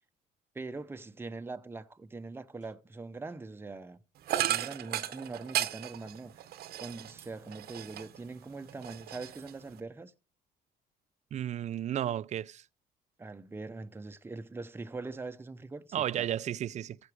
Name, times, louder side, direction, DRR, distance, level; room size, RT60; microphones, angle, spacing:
voice 1, 0.5-4.0 4.5-6.3 6.8-10.1 13.2-16.3, right 3 dB, 15° right, 0.7 m, -42 dB
sound 1, 4.3-8.3 8.6-9.8, right 12 dB, 70° right, 0.9 m, -35 dB
voice 2, 11.3-12.6 15.9-17.0, right 11 dB, 45° right, 0.4 m, -33 dB
15.0 x 6.1 x 4.8 m
cardioid pair, 110°, 17 cm